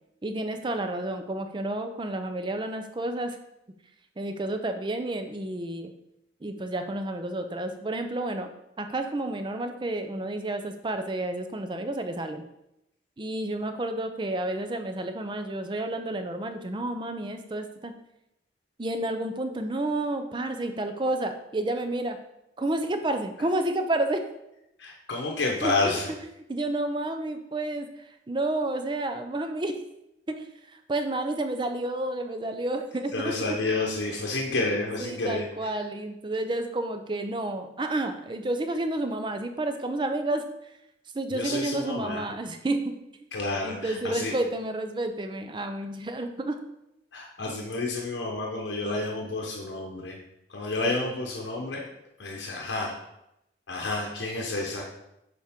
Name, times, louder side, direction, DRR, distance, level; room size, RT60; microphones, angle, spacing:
voice 1, 0.2-3.4 4.2-5.9 6.4-8.5 8.8-12.4 13.2-17.9 18.8-22.2 22.6-24.2 25.2-25.3 25.6-26.0 26.5-29.8 30.3-33.6 35.0-40.7 41.1-42.9 43.2-43.3 43.6-46.6, right 2 dB, 25° right, 7 dB, 0.5 m, -30 dB
voice 2, 24.8-26.1 33.1-35.4 41.3-42.2 43.3-44.4 47.1-50.2 50.5-51.8 52.2-53.0 53.7-54.9, left 3 dB, 75° left, -1 dB, 0.9 m, -30 dB
6.9 x 4.4 x 3.6 m, 0.85 s
head